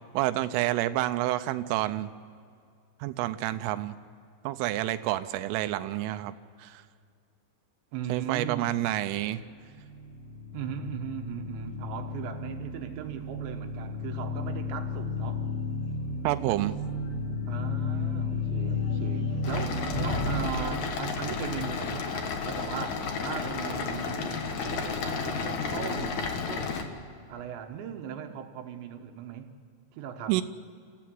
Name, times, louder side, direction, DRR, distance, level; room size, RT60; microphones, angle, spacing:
voice 1, 0.1-2.1 3.0-4.0 4.4-6.3 6.6-6.8 8.1-9.4 16.2-16.8 30.3-30.4, right 15 dB, 90° right, 11 dB, 3.3 m, -28 dB
voice 2, 7.9-8.9 10.5-15.5 17.5-26.7 27.3-29.5 29.9-30.4, right 8 dB, 70° right, 5 dB, 3.3 m, -38 dB
sound 1, 9.6-20.4, left 3 dB, 80° left, 5.7 m, -33 dB
sound 2, 19.4-26.8, left 5 dB, 60° left, 2.0 m, -32 dB
27.5 x 15.5 x 7.7 m, 2.3 s
omnidirectional pair, 5.6 m